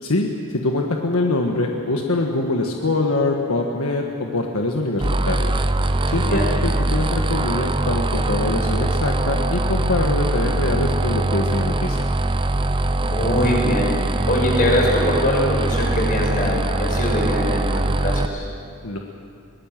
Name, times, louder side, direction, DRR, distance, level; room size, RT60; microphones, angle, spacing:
voice 1, 0.0-5.5 6.1-12.1 18.8-19.0, left 2 dB, 80° left, 1 dB, 1.6 m, -24 dB
sound 1, 5.0-18.3, right 2 dB, 25° right, 0.7 m, -22 dB
voice 2, 13.0-13.9 14.3-18.5, left 1 dB, 40° left, -1 dB, 6.0 m, -22 dB
22.5 x 19.5 x 7.5 m, 2.5 s
head